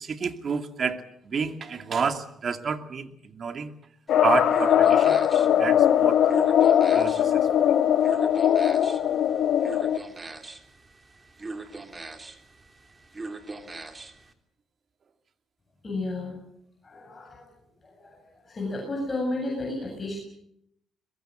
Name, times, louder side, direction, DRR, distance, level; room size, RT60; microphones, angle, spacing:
voice 1, 0.0-3.7 4.2-5.2 5.6-6.2 6.9-7.7, right 6 dB, 50° right, 8 dB, 2.4 m, -30 dB
sound 1, 4.1-10.0, left 10 dB, 65° left, 1.0 m, -20 dB
sound 2, 4.1-14.3, right 3 dB, 25° right, 2.9 m, -41 dB
voice 2, 15.8-16.3 16.8-17.5 17.8-20.2, left 2 dB, 30° left, 0 dB, 7.9 m, -32 dB
23.0 x 21.5 x 7.8 m, 0.74 s
cardioid pair, 90°, 0 cm